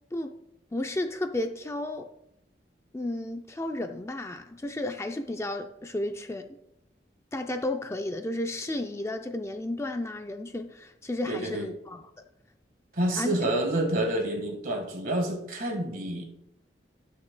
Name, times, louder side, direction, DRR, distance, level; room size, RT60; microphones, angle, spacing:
voice 1, 0.7-2.1 2.9-6.5 7.3-12.0 13.1-13.5, left 1 dB, 15° left, 0.4 m, -33 dB
voice 2, 11.3-11.7 12.9-16.2, right 1 dB, 50° right, 1.6 m, -28 dB
19.0 x 6.5 x 2.2 m
head